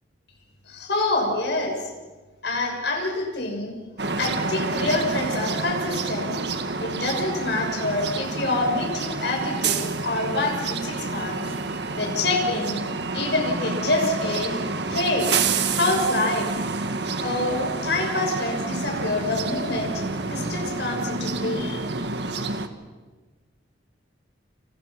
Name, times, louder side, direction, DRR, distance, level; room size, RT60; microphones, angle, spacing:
voice 1, 0.7-1.7 2.4-3.7 4.2-6.4 6.8-11.4 12.0-12.8 13.1-14.5 14.9-15.3 15.7-16.5 17.2-21.8, left 2 dB, 60° left, 2 dB, 6.5 m, -26 dB
sound 1, 4.0-22.7, right 3 dB, 60° right, 1.7 m, -28 dB
29.5 x 27.5 x 5.9 m, 1.3 s
head